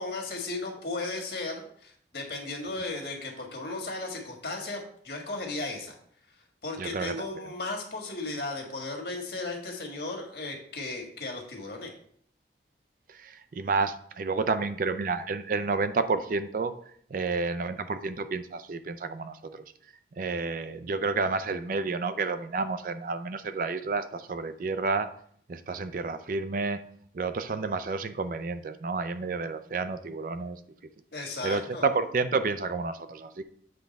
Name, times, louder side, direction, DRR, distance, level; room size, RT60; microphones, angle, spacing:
voice 1, 0.0-5.9 6.6-11.9 31.1-31.8, left 2 dB, 65° left, 1 dB, 1.6 m, -35 dB
voice 2, 6.8-7.1 13.2-16.7 17.1-19.6 20.2-25.1 25.5-26.8 27.1-30.6 31.4-33.4, right 4 dB, 50° right, 11 dB, 0.4 m, -30 dB
7.8 x 3.5 x 5.2 m, 0.63 s
head